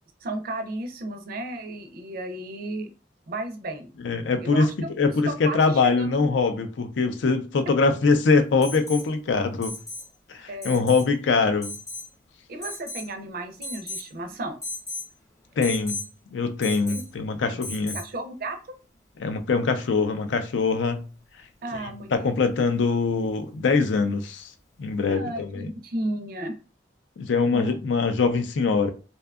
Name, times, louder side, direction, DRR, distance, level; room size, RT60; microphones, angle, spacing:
voice 1, 0.2-2.9 3.3-3.9 4.4-4.9 5.3-6.3 10.5-10.9 12.5-14.6 16.9-17.0 17.5-17.6 17.9-18.6 21.6-22.3 25.1-26.5 27.5-27.7, right 1 dB, 55° right, 0.4 m, -34 dB
voice 2, 4.0-9.7 10.3-11.8 15.6-16.0 16.3-18.0 19.2-21.0 21.7-24.5 24.8-25.7 27.2-28.9, left 4 dB, 85° left, 0.4 m, -23 dB
Alarm, 8.6-9.1 9.6-10.1 10.6-11.1 11.6-12.1 12.6-13.1 13.6-14.1 14.6-15.1 15.6-16.1 16.6-17.1 17.6-18.1 19.8-19.9, left 2 dB, 15° left, 0.6 m, -36 dB
2.6 x 2.2 x 2.3 m
head